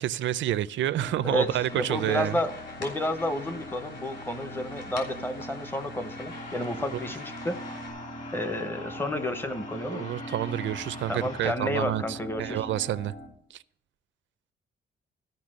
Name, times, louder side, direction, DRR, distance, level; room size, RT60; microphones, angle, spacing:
voice 1, 0.0-2.4 6.8-6.9 9.9-13.1 13.5-13.6, right 12 dB, 75° right, 0.5 m, -29 dB
sound 1, 1.0-13.3, right 1 dB, 80° left, 4.2 m, -42 dB
sound 2, 1.4-7.9, left 3 dB, 60° left, 3.9 m, -44 dB
voice 2, 1.7-7.6 8.3-10.1 11.1-12.7, left 1 dB, 10° left, 0.7 m, -31 dB
sound 3, 6.3-11.5, left 2 dB, 40° left, 2.1 m, -44 dB
13.5 x 5.7 x 7.5 m
wide cardioid pair, 170°, 19 cm